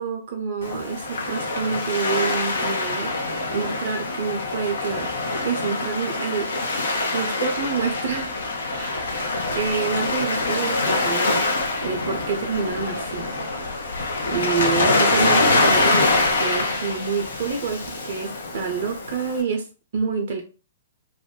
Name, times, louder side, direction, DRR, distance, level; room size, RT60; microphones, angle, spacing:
voice 1, 0.0-3.1 3.5-5.1 5.4-8.3 8.7-9.2 9.5-11.5 11.8-13.2 14.2-19.7 19.9-20.4, right 5 dB, 55° right, 2 dB, 0.5 m, -27 dB
Waves surf, 0.6-19.4, left 2 dB, 65° left, 0.6 m, -24 dB
2.4 x 2.1 x 3.6 m, 0.36 s
figure-of-eight pair, 115°, 0 cm